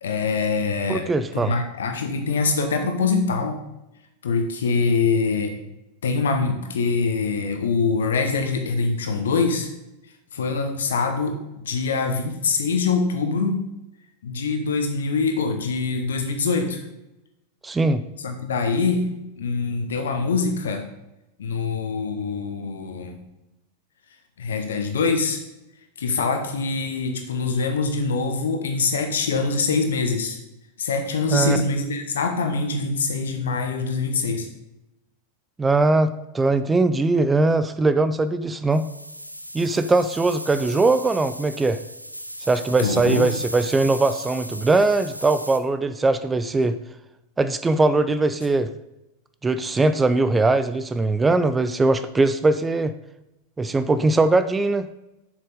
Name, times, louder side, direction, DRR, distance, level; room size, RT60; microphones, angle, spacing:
voice 1, 0.0-1.1 1.3-3.6 4.2-5.5 6.0-9.7 10.3-11.4 11.6-13.6 14.2-16.8 18.2-19.1 19.4-20.9 21.4-23.2 24.4-25.4 26.0-30.4 30.8-34.5 42.8-43.3, left 4 dB, 65° left, 5 dB, 1.4 m, -24 dB
voice 2, 0.9-1.5 17.6-18.0 31.3-31.6 35.6-38.8 39.5-41.8 42.5-46.7 47.4-48.7 49.4-52.9 53.6-54.9, right 3 dB, 15° right, 12 dB, 0.4 m, -20 dB
sound 1, 38.7-45.6, equal, 90° right, 0.5 m, -36 dB
7.5 x 6.6 x 5.0 m, 0.93 s
figure-of-eight pair, 90°, 0 cm